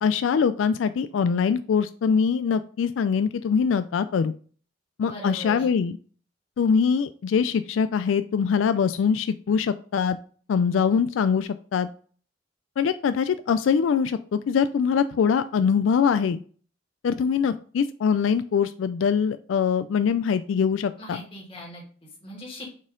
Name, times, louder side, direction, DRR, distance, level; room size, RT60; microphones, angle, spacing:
voice 1, 0.0-4.3 5.0-6.0 6.6-10.2 10.5-11.9 12.8-16.4 17.0-21.2, left 6 dB, 85° left, 12 dB, 0.3 m, -23 dB
voice 2, 5.0-5.7 21.0-22.7, left 1 dB, 30° left, -2 dB, 2.2 m, -40 dB
6.1 x 4.2 x 3.8 m, 0.43 s
head